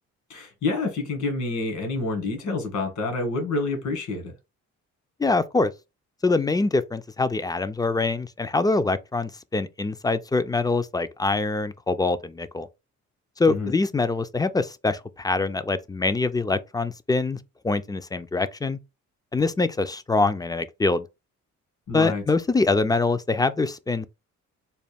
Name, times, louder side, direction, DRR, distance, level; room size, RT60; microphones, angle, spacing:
voice 1, 0.3-4.3 13.5-13.7 21.9-22.2, left 3 dB, 70° left, 1.9 m, -28 dB
voice 2, 5.2-5.7 6.2-12.7 13.4-17.4 17.6-18.8 19.3-21.1 21.9-24.1, left 3 dB, 15° left, 0.3 m, -24 dB
4.0 x 2.2 x 3.4 m
cardioid pair, 90°, 30 cm